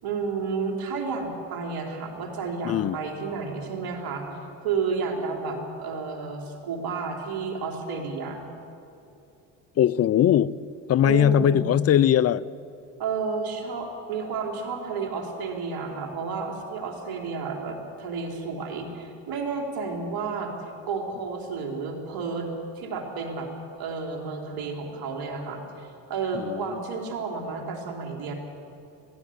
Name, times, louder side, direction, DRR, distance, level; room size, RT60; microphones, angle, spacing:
voice 1, 0.0-4.2 4.6-8.4 11.0-11.7 13.0-20.5 20.9-22.5 22.7-23.5 23.8-28.3, right 4 dB, 65° right, 2 dB, 4.1 m, -31 dB
voice 2, 2.6-3.0 9.8-10.5 10.9-12.4 26.3-26.8, left 10 dB, 40° left, 20 dB, 0.7 m, -20 dB
20.5 x 15.5 x 9.0 m, 2.7 s
supercardioid pair, 80°, 39 cm